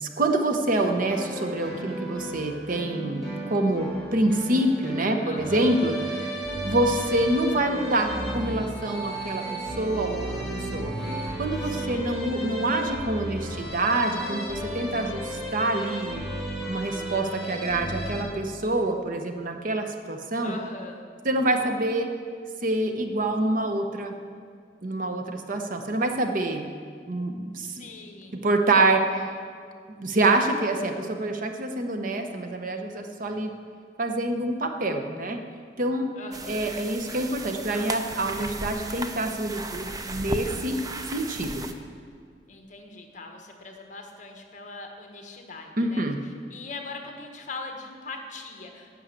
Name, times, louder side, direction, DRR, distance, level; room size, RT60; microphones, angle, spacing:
voice 1, 0.0-6.4 6.6-10.9 11.4-16.2 16.7-20.5 21.2-22.1 22.6-24.1 24.8-26.7 27.1-27.9 28.4-29.3 30.0-33.5 34.0-35.4 35.8-36.1 36.5-40.8 41.1-41.6 45.8-46.2, right 2 dB, 50° right, 5 dB, 0.9 m, -26 dB
sound 1, 0.8-18.2, right 1 dB, ahead, 3.7 m, -34 dB
voice 2, 5.2-5.8 11.6-12.2 20.4-21.0 27.5-28.3 36.1-36.7 42.5-46.0 46.5-48.9, left 3 dB, 45° left, 3 dB, 1.3 m, -41 dB
sound 2, 36.3-41.7, right 2 dB, 20° right, 0.6 m, -35 dB
11.0 x 6.3 x 8.1 m, 2.1 s
head